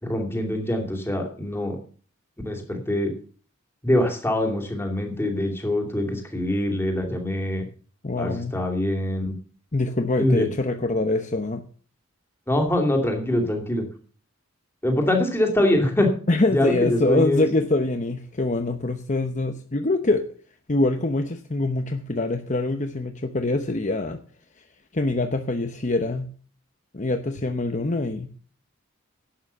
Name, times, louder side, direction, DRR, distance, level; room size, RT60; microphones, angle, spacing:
voice 1, 0.0-1.8 2.4-3.1 3.8-7.7 8.2-9.3 10.2-10.5 12.5-13.9 14.8-16.1 16.5-17.5, left 1 dB, 10° left, 3 dB, 2.7 m, -24 dB
voice 2, 8.0-8.6 9.7-11.6 16.3-20.2 20.7-24.2 24.6-24.7 24.9-26.3 26.9-28.3, left 2 dB, 35° left, 7 dB, 0.9 m, -24 dB
11.5 x 8.8 x 6.9 m, 0.43 s
head